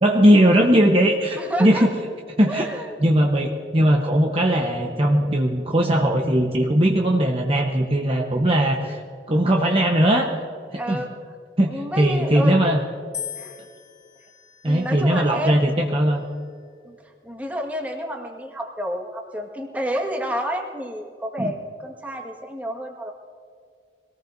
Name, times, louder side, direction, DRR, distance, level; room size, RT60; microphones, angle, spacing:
voice 1, 0.0-1.9 2.4-2.7 3.0-9.0 9.3-10.3 10.7-11.0 11.6-12.8 14.6-16.2 21.4-21.5, right 1 dB, 30° right, 0 dB, 1.0 m, -19 dB
voice 2, 1.4-1.9 2.5-2.9 10.8-11.1 11.7-12.7 13.4-13.6 14.6-15.7 16.8-17.0 17.2-23.1, equal, 10° right, 0 dB, 1.7 m, -30 dB
sound 1, 13.1-15.4 16.2-16.7, left 8 dB, 40° left, 1.5 m, -39 dB
24.0 x 18.5 x 2.7 m, 2.3 s
head